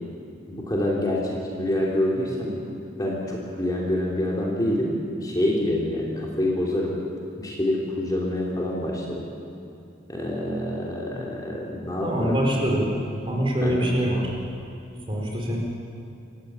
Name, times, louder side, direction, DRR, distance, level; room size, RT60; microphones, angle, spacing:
voice 1, 0.5-1.2 1.5-2.5 3.0-4.9 5.2-6.9 7.4-9.2 10.1-12.4 13.6-13.9, left 1 dB, 20° left, -4 dB, 3.1 m, -26 dB
voice 2, 12.0-12.9 13.2-14.4 15.1-15.6, equal, 25° right, -1 dB, 4.5 m, -24 dB
26.0 x 16.0 x 8.9 m, 2.7 s
head